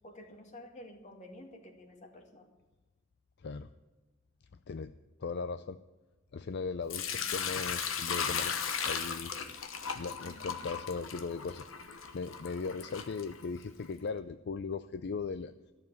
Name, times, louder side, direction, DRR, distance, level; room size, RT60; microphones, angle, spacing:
voice 1, 0.0-2.5, left 1 dB, 35° left, 4 dB, 2.0 m, -50 dB
voice 2, 3.4-3.7 4.7-4.9 5.2-5.8 6.3-9.3 9.9-11.6 12.1-15.5, left 4 dB, 55° left, 12 dB, 0.4 m, -38 dB
Sink (filling or washing) / Liquid, 6.9-13.8, left 6 dB, 70° left, 1.2 m, -36 dB
13.5 x 7.2 x 9.5 m, 1.2 s
head